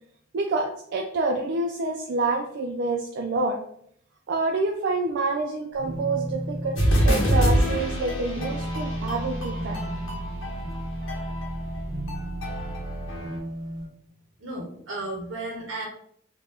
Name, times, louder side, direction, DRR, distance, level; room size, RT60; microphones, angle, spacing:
voice 1, 0.3-3.6 4.3-9.8, right 3 dB, 55° right, 1 dB, 0.3 m, -27 dB
sound 1, 5.7-13.9, equal, 20° right, 0.7 m, -35 dB
sound 2, 6.8-13.4, equal, 80° left, 1.0 m, -26 dB
voice 2, 14.4-15.9, right 2 dB, 80° right, -2 dB, 0.7 m, -34 dB
2.7 x 2.2 x 3.3 m, 0.66 s
head